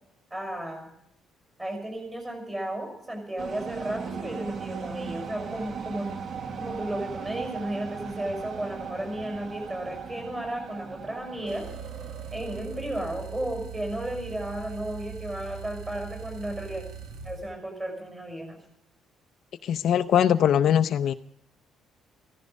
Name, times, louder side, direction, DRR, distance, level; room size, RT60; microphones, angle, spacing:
voice 1, 0.3-0.9 1.6-6.1 6.6-11.6 12.3-16.8 17.2-18.6, right 1 dB, 15° right, 4 dB, 5.9 m, -34 dB
sound 1, 3.4-13.0, right 6 dB, 35° right, 1.0 m, -38 dB
sound 2, 11.5-17.5, right 8 dB, 65° right, 1.6 m, -41 dB
voice 2, 19.6-21.1, left 9 dB, 50° left, 9 dB, 0.5 m, -21 dB
16.0 x 14.5 x 5.2 m, 0.73 s
cardioid pair, 170°, 0 cm